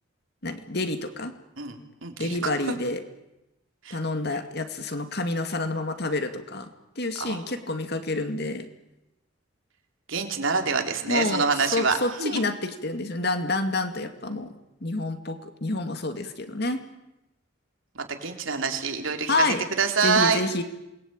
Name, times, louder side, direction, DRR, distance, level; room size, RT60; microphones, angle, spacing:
voice 1, 0.4-1.3 2.2-3.0 3.9-6.7 7.0-8.7 11.1-11.5 11.7-14.5 14.8-16.8 19.3-19.6 20.0-20.6, left 2 dB, 50° left, 8 dB, 2.4 m, -28 dB
voice 2, 1.6-2.5 3.8-4.0 7.2-7.5 10.1-12.4 18.0-20.4, right 5 dB, 75° right, 4 dB, 3.5 m, -26 dB
28.0 x 21.0 x 9.0 m, 0.93 s
head